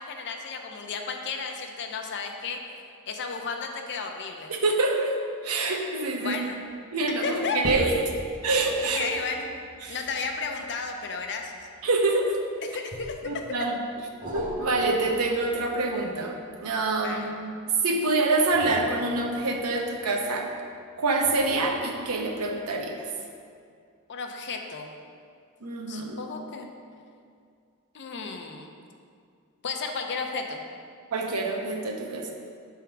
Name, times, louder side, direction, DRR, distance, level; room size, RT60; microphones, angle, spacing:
voice 1, 0.0-2.6 3.1-4.5 6.2-6.6 7.2-7.8 8.8-9.5 9.9-11.6 12.6-13.5 17.0-17.3 24.1-24.9 25.9-26.7 27.9-28.7 29.6-30.6, left 4 dB, 50° left, 3 dB, 0.6 m, -33 dB
voice 2, 4.5-5.2 5.4-6.4 6.9-7.9 8.4-9.1 9.8-10.0 11.8-12.4 13.3-13.8 14.3-17.5 17.8-20.5 21.0-23.1 25.6-26.2 31.1-32.3, right 2 dB, 85° right, 2 dB, 0.8 m, -26 dB
sound 1, 6.3-6.7 7.5-12.2 12.9-13.5 14.2-17.2 18.4-20.5 21.2-22.6 23.1-23.2, right 1 dB, 35° right, 0.7 m, -40 dB
7.0 x 3.6 x 4.6 m, 2.3 s
head